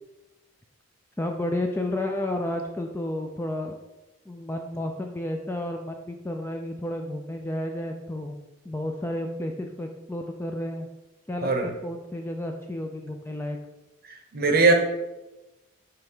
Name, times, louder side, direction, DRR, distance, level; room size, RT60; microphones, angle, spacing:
voice 1, 1.2-3.8 4.3-8.4 8.6-10.9 11.3-13.6, left 1 dB, 10° left, 3 dB, 0.3 m, -31 dB
voice 2, 14.3-14.7, right 3 dB, 45° right, 4 dB, 0.8 m, -19 dB
5.6 x 3.3 x 5.4 m, 1.0 s
head